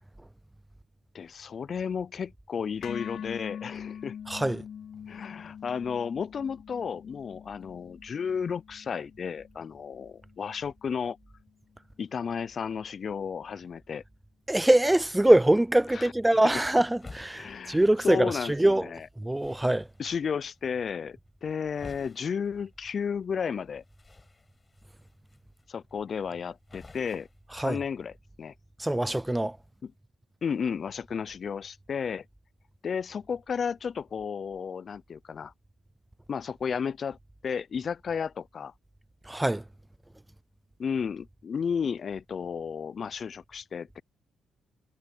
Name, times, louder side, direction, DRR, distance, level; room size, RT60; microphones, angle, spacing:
voice 1, 1.1-4.2 5.1-11.2 12.0-14.0 15.9-16.1 17.3-19.1 20.0-23.8 25.7-27.3 27.6-28.1 28.4-28.5 29.8-29.9 30.4-32.2 32.8-35.5 36.3-37.2 37.4-38.7 40.8-44.0, left 6 dB, 50° left, 0.4 m, -33 dB
sound 1, 2.8-10.9, left 8 dB, 65° left, 2.2 m, -44 dB
voice 2, 4.3-4.6 14.5-18.9 19.2-19.9 27.5-27.8 28.8-29.6 39.3-39.6, right 1 dB, 10° right, 0.5 m, -23 dB
sound 2, 16.2-28.2, left 3 dB, 25° left, 5.9 m, -54 dB
cardioid pair, 90°, 0 cm